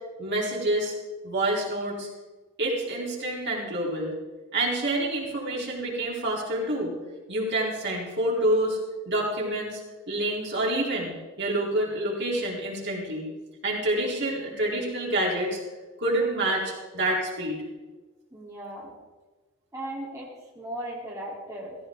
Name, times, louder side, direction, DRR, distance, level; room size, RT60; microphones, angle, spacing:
voice 1, 0.2-0.9 1.2-2.1 2.6-4.1 4.5-6.9 7.3-8.8 9.1-9.8 10.1-11.1 11.4-13.3 13.6-15.6 16.0-17.6, right 1 dB, 55° right, -3 dB, 4.2 m, -27 dB
voice 2, 18.3-18.9 19.7-20.3 20.5-21.8, right 1 dB, 15° right, -5 dB, 3.8 m, -37 dB
17.0 x 16.0 x 3.9 m, 1.3 s
head